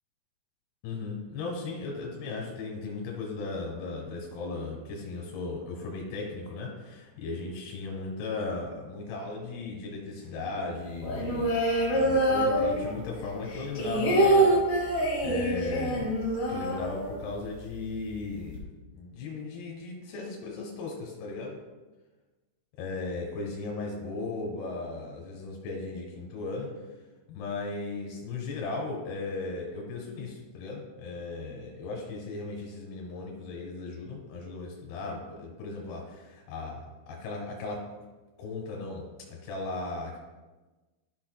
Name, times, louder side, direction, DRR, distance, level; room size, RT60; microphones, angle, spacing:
voice 1, 0.8-11.5 11.9-14.6 15.2-16.2 16.5-18.7 18.9-21.6 22.8-26.7 27.3-37.9 38.4-40.2, left 3 dB, 85° left, 0 dB, 3.1 m, -36 dB
sound 1, 11.0-13.2 13.5-17.4 17.7-17.8 18.1-18.6, right 1 dB, 45° left, 2.9 m, -25 dB
13.0 x 5.8 x 2.3 m, 1.2 s
omnidirectional pair, 4.6 m